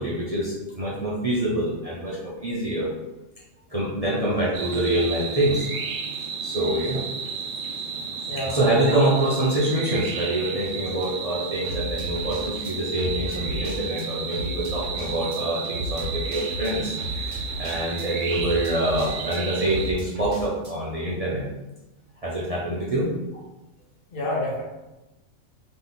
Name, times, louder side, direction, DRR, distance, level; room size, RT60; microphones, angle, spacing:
voice 1, 0.0-2.9 3.7-5.7 6.4-7.0 8.4-16.9 17.2-21.4 22.2-23.1, right 1 dB, 35° right, -6 dB, 0.7 m, -25 dB
sound 1, 4.3-4.6 11.6-14.1 14.3-20.7, equal, 50° right, 1.9 m, -34 dB
sound 2, 4.5-19.9, right 5 dB, 80° right, 0.4 m, -33 dB
voice 2, 8.2-9.1 24.1-24.6, left 1 dB, 50° left, -3 dB, 0.9 m, -29 dB
3.7 x 3.0 x 3.9 m, 1.0 s
omnidirectional pair, 1.4 m